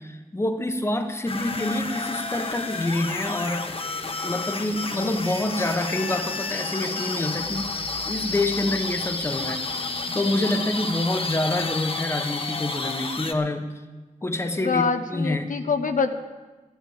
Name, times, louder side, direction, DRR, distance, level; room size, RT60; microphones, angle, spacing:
voice 1, 0.0-3.7 4.2-7.7 8.1-13.7 14.2-14.8 15.1-15.6, left 2 dB, 20° left, 7 dB, 1.1 m, -27 dB
sound 1, 1.3-13.3, left 3 dB, 45° left, 1.0 m, -30 dB
voice 2, 14.6-16.1, left 5 dB, 75° left, 7 dB, 0.9 m, -25 dB
13.0 x 10.5 x 7.2 m, 1.3 s
wide cardioid pair, 110°, 14 cm